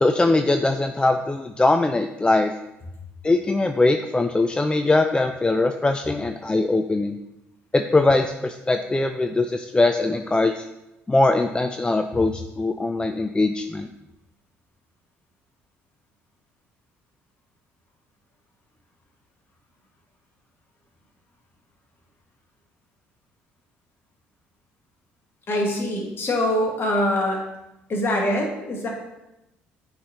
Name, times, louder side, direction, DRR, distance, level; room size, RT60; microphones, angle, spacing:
voice 1, 0.0-2.5 3.2-7.2 7.7-10.7 11.1-13.9, left 2 dB, 15° left, 7 dB, 0.4 m, -21 dB
voice 2, 25.5-27.4 27.9-28.9, left 1 dB, 40° left, 0 dB, 1.8 m, -23 dB
8.4 x 4.1 x 2.9 m, 0.92 s
hypercardioid pair, 55°, 6 cm